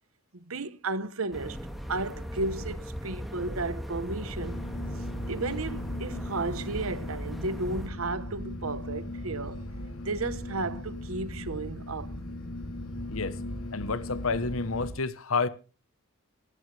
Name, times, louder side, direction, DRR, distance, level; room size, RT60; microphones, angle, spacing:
voice 1, 0.3-1.6 1.9-4.6 5.3-9.6 10.0-12.1, right 3 dB, 85° right, 1.1 m, -33 dB
sound 1, 1.3-7.9, equal, ahead, 2.1 m, -38 dB
sound 2, 4.4-14.9, left 1 dB, 90° left, 3.2 m, -38 dB
voice 2, 13.7-15.5, left 4 dB, 75° left, 1.1 m, -29 dB
18.0 x 16.5 x 3.4 m
head